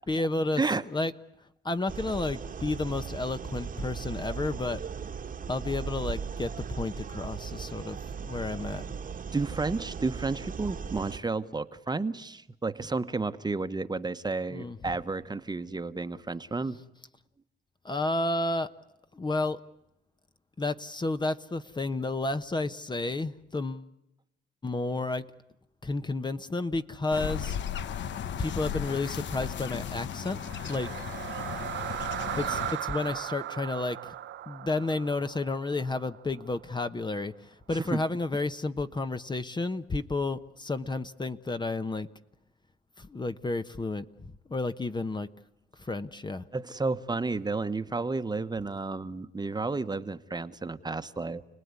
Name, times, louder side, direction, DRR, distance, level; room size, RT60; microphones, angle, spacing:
voice 1, 0.1-0.6 0.9-1.1 1.6-4.8 5.5-8.9 14.5-14.8 17.8-18.7 19.1-19.6 20.6-23.9 24.6-25.3 25.8-27.6 28.4-30.9 32.4-34.1 34.5-42.1 43.0-45.3 45.8-46.4, left 2 dB, 20° left, 10 dB, 1.0 m, -31 dB
sound 1, 1.9-11.2, right 6 dB, 45° right, 1.4 m, -38 dB
voice 2, 9.3-16.8 31.8-31.9 37.7-38.0 46.5-51.4, right 3 dB, 20° right, 11 dB, 1.2 m, -31 dB
sound 2, 27.1-32.7, left 9 dB, 65° left, 1.0 m, -36 dB
sound 3, 30.3-36.5, right 12 dB, 70° right, 0.9 m, -37 dB
30.0 x 19.5 x 9.7 m, 0.89 s
cardioid pair, 90°, 20 cm